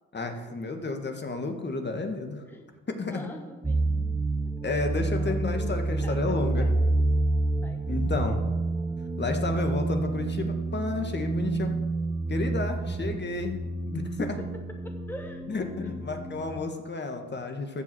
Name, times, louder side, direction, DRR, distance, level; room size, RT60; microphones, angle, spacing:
voice 1, 0.1-2.4 2.9-3.3 4.6-6.7 7.9-8.4 9.2-11.7 12.3-14.4 15.5-17.8, left 3 dB, 35° left, 5 dB, 1.8 m, -31 dB
voice 2, 3.0-3.9 4.4-4.8 5.2-5.4 6.0-6.7 7.6-8.2 14.2-16.3, equal, 5° left, 3 dB, 1.2 m, -44 dB
sound 1, 3.6-16.6, right 2 dB, 10° right, 1.1 m, -29 dB
14.5 x 4.9 x 7.7 m, 1.3 s
supercardioid pair, 65°, 30 cm